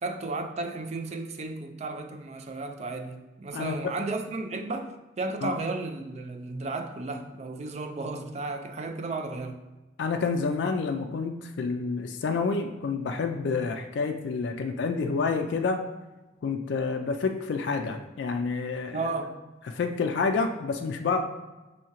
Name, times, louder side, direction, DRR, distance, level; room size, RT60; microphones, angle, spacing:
voice 1, 0.0-9.6 18.9-19.4, right 3 dB, 35° right, 0.3 m, -34 dB
voice 2, 3.5-3.9 5.4-5.6 10.0-15.8 16.4-19.0 19.7-21.2, left 4 dB, 65° left, 0.3 m, -28 dB
5.6 x 2.8 x 2.9 m
head